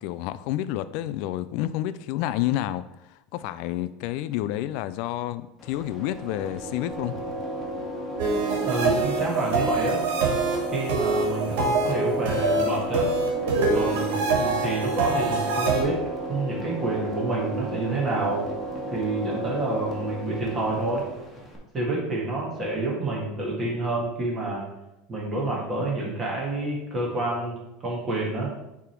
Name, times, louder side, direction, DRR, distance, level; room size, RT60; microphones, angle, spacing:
voice 1, 0.0-2.8 3.1-7.4, left 13 dB, 60° left, 0.4 m, -29 dB
sound 1, 5.6-21.6, right 1 dB, 10° left, 1.5 m, -34 dB
sound 2, 8.2-15.8, right 3 dB, 85° right, 1.8 m, -25 dB
voice 2, 8.6-10.0 10.7-13.1 13.7-16.0 16.3-18.5 18.9-21.0 21.7-24.7 25.1-28.5, right 2 dB, 25° right, 1.8 m, -28 dB
8.4 x 3.5 x 4.5 m
supercardioid pair, 145°, 0 cm